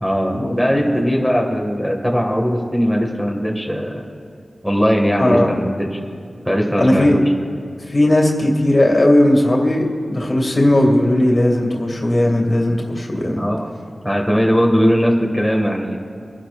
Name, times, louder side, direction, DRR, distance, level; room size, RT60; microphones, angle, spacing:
voice 1, 0.0-4.1 4.6-6.0 6.5-7.2 13.4-13.7 14.0-16.0, equal, ahead, 0 dB, 1.9 m, -19 dB
voice 2, 5.2-5.5 6.8-7.2 7.9-9.8 10.1-13.4, left 1 dB, 45° left, 1 dB, 2.3 m, -16 dB
25.5 x 11.5 x 2.5 m, 2.4 s
cardioid pair, 50°, 0 cm